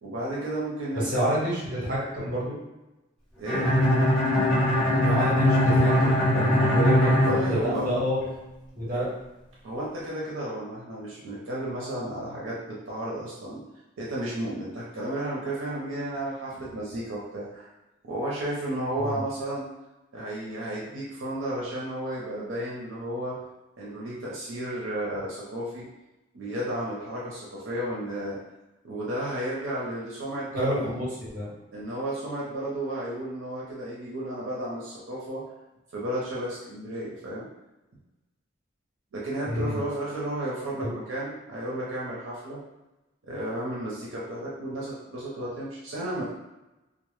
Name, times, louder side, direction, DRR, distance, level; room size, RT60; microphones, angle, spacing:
voice 1, 0.0-1.2 3.4-3.7 7.0-7.9 9.6-13.6 14.0-17.7 18.0-19.7 20.1-23.4 23.8-25.9 26.3-28.4 28.8-31.0 31.7-35.4 35.9-37.5 39.1-42.6 43.2-46.2, right 1 dB, 75° right, -6 dB, 0.5 m, -33 dB
voice 2, 1.0-2.6 5.0-8.2 8.7-9.1 19.0-19.2 30.5-31.5 39.5-39.8 40.8-40.9, equal, 45° right, -6 dB, 0.9 m, -28 dB
Bowed string instrument, 3.5-8.3, left 1 dB, 5° left, 1.0 m, -22 dB
2.0 x 2.0 x 3.0 m, 1.0 s
head